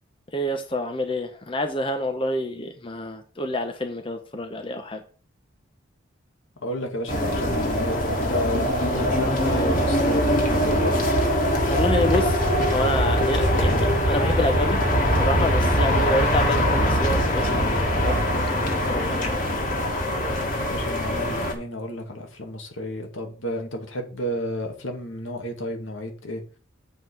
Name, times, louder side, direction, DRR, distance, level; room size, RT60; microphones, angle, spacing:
voice 1, 0.3-5.0 11.7-14.8 15.2-19.4, left 1 dB, 25° left, 0.8 m, -28 dB
voice 2, 6.6-11.1 20.6-26.4, equal, 80° left, 2.0 m, -31 dB
sound 1, 7.1-21.5, equal, 40° left, 2.1 m, -22 dB
7.7 x 5.1 x 5.9 m
head